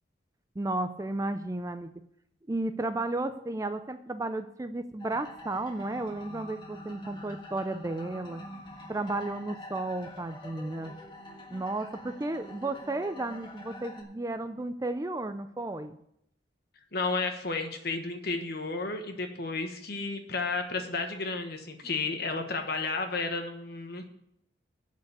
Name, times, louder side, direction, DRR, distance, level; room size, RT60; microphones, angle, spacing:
voice 1, 0.6-1.9 2.5-8.4 8.9-10.9 11.5-16.0, right 2 dB, 15° right, 10 dB, 0.4 m, -33 dB
sound 1, 5.0-14.0, left 1 dB, 25° left, 1.5 m, -46 dB
voice 2, 16.9-24.0, left 3 dB, 50° left, 6 dB, 1.3 m, -32 dB
8.3 x 6.6 x 8.1 m, 0.75 s
head